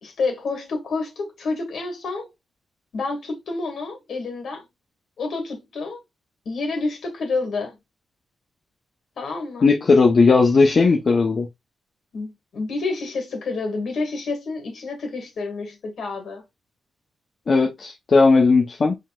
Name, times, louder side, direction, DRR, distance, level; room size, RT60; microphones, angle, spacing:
voice 1, 0.0-2.3 2.9-4.6 5.2-6.0 6.5-7.8 9.2-9.7 12.1-16.4, left 3 dB, 60° left, 2.1 m, -29 dB
voice 2, 9.6-11.5 17.5-19.0, left 4 dB, 40° left, 0.8 m, -16 dB
5.4 x 3.7 x 2.4 m
wide cardioid pair, 145°, 0 cm